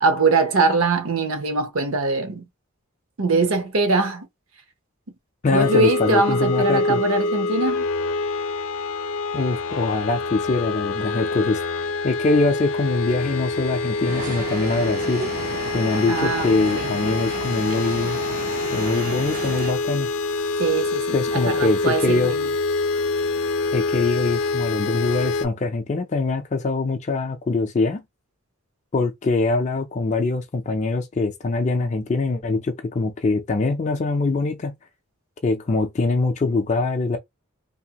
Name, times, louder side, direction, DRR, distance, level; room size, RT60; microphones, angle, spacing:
voice 1, 0.0-2.5 3.2-4.3 5.5-7.9 16.1-17.0 20.6-22.5, right 3 dB, 70° right, 0.8 m, -22 dB
voice 2, 5.4-7.0 9.3-11.6 12.0-15.2 15.7-18.2 18.7-20.1 21.1-22.3 23.7-28.0 28.9-34.8 35.4-37.2, left 3 dB, 30° left, 0.4 m, -23 dB
sound 1, 5.6-25.5, left 3 dB, 85° left, 0.5 m, -26 dB
sound 2, 14.0-19.7, right 4 dB, 40° right, 0.4 m, -33 dB
2.7 x 2.4 x 2.8 m
head